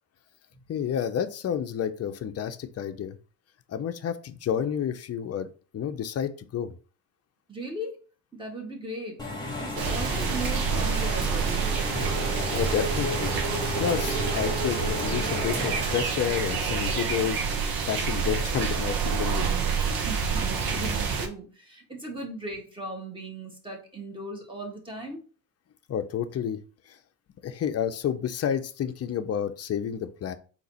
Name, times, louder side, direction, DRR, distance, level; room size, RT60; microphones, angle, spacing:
voice 1, 0.7-3.2 3.7-6.8 12.5-13.4 13.8-19.7 25.9-26.6 26.9-27.0 27.4-30.3, left 8 dB, 35° left, 9 dB, 0.7 m, -30 dB
voice 2, 7.5-8.0 8.3-9.3 9.6-11.6 20.1-25.2, right 1 dB, 10° right, 0 dB, 2.0 m, -37 dB
Engine / Mechanisms, 9.2-16.1, left 1 dB, 10° left, 1.7 m, -33 dB
sound 1, 9.8-21.3, right 5 dB, 60° right, 1.2 m, -28 dB
3.9 x 3.0 x 4.3 m, 0.37 s
hypercardioid pair, 60°, 41 cm